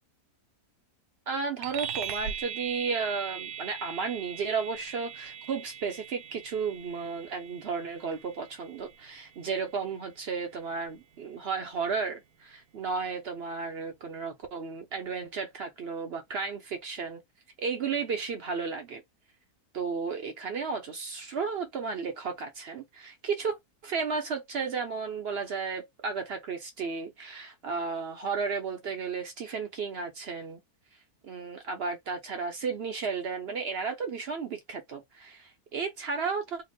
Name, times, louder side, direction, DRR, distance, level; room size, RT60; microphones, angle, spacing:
voice 1, 1.3-17.2 17.6-19.0 19.7-23.6 23.8-30.6 31.2-36.6, right 5 dB, 65° right, 0.6 m, -33 dB
sound 1, 1.6-11.5, right 8 dB, 80° right, 1.1 m, -41 dB
2.9 x 2.0 x 3.8 m
omnidirectional pair, 1.6 m